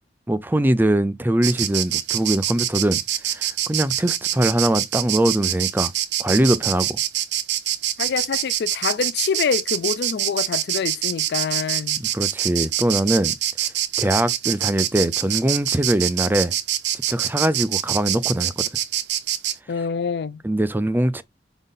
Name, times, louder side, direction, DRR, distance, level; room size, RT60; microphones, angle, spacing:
voice 1, 0.3-3.0 3.3-5.9 6.2-7.0 12.0-13.3 14.0-16.5 17.1-18.6 20.4-21.2, right 1 dB, 10° right, 0.5 m, -22 dB
Insect, 1.4-19.6, right 12 dB, 75° right, 0.7 m, -25 dB
voice 2, 8.0-12.0 19.7-20.4, left 6 dB, 65° left, 0.4 m, -26 dB
5.0 x 4.1 x 5.4 m
head